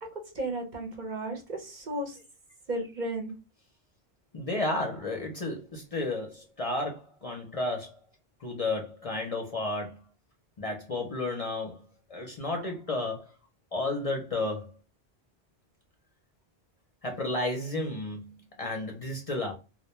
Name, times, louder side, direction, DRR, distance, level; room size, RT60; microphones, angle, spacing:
voice 1, 0.1-2.2 2.7-3.3, right 1 dB, 50° right, 0.8 m, -34 dB
voice 2, 4.3-8.0 8.4-10.0 10.6-11.8 12.1-13.3 13.7-14.7 17.0-19.5, left 2 dB, 45° left, 0.6 m, -32 dB
2.2 x 2.2 x 2.9 m
omnidirectional pair, 1.0 m